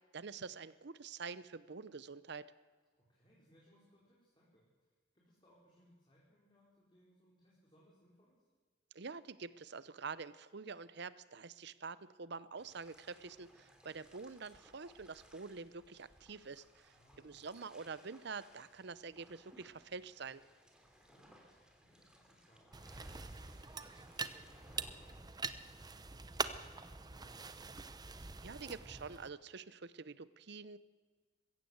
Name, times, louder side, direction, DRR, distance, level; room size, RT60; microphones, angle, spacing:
voice 1, 0.1-2.5 8.9-16.9 17.2-20.4 28.4-30.8, right 4 dB, 65° right, 16 dB, 0.8 m, -47 dB
voice 2, 3.0-8.4 16.9-17.5 20.8-22.8 23.2-27.6, equal, 25° left, -5 dB, 4.6 m, -68 dB
sound 1, 12.6-25.2, equal, 5° right, 3.1 m, -64 dB
sound 2, 22.7-29.3, right 4 dB, 20° right, 0.8 m, -44 dB
21.5 x 16.0 x 8.0 m, 1.4 s
head